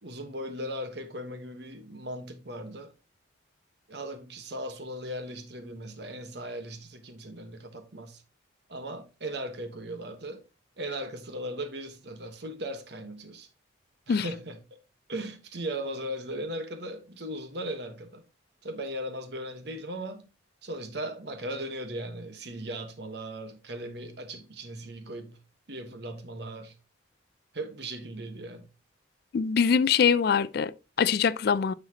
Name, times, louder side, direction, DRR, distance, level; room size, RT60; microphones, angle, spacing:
voice 1, 0.0-2.9 3.9-8.2 8.7-10.4 10.8-13.5 14.1-14.8 15.1-18.2 18.6-20.3 20.6-25.4 25.7-26.7 27.5-28.7, right 1 dB, 60° right, 1.3 m, -38 dB
voice 2, 29.3-31.7, left 6 dB, 55° left, 0.3 m, -23 dB
9.5 x 5.7 x 2.9 m
head